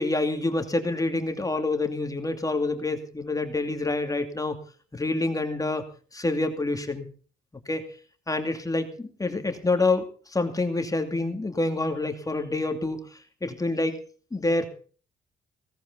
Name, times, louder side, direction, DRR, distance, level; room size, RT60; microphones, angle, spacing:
voice 1, 0.0-4.6 4.9-5.8 6.1-7.1 7.7-7.9 8.3-10.0 10.3-13.0 13.4-14.0 14.3-14.7, left 2 dB, 15° left, 7 dB, 2.5 m, -27 dB
17.5 x 14.5 x 4.0 m, 0.40 s
cardioid pair, 90°, 20 cm